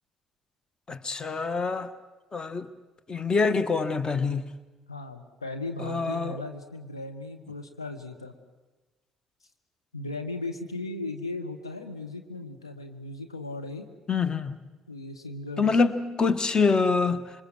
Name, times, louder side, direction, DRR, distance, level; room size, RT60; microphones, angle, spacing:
voice 1, 0.9-1.9 2.3-2.7 3.1-4.5 5.8-6.4 14.1-14.6 15.6-17.3, left 4 dB, 30° left, 1.4 m, -25 dB
voice 2, 4.9-8.3 9.9-13.9 14.9-15.9, left 2 dB, 85° left, 1.5 m, -37 dB
27.0 x 23.0 x 7.9 m
figure-of-eight pair, 50°, 3 cm